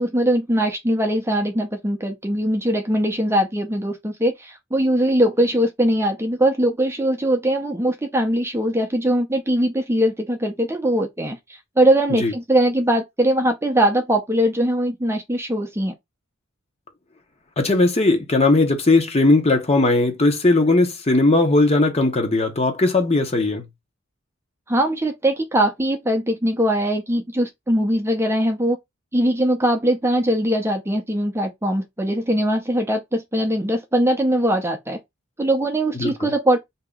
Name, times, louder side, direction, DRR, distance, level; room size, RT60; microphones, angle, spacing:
voice 1, 0.0-11.4 11.8-15.9 24.7-28.8 29.1-35.0 35.4-36.6, right 1 dB, 15° right, 0.6 m, -21 dB
voice 2, 17.6-23.6 36.0-36.3, left 2 dB, 30° left, 0.9 m, -18 dB
2.9 x 2.8 x 3.6 m
head